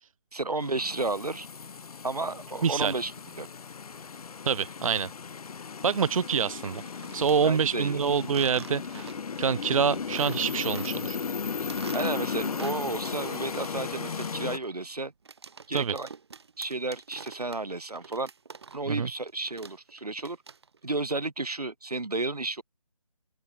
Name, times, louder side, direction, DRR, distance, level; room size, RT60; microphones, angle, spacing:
voice 1, 0.3-1.5 2.0-3.1 3.4-3.5 7.4-8.0 11.9-15.1 15.7-16.1 16.6-18.3 18.7-20.4 20.8-22.6, right 2 dB, 90° right, 2.4 m, -32 dB
sound 1, 0.6-14.6, left 5 dB, 75° left, 0.5 m, -36 dB
voice 2, 2.6-2.9 4.5-5.1 5.8-9.1 9.4-11.2 15.7-15.9 18.9-19.1, right 6 dB, 65° right, 0.4 m, -26 dB
sound 2, 6.7-7.4 8.3-9.4 9.7-9.8 10.1-11.3 11.6-13.2 13.5-19.0 19.3-20.9, right 5 dB, 45° right, 0.9 m, -46 dB
open air
figure-of-eight pair, 165°, 19 cm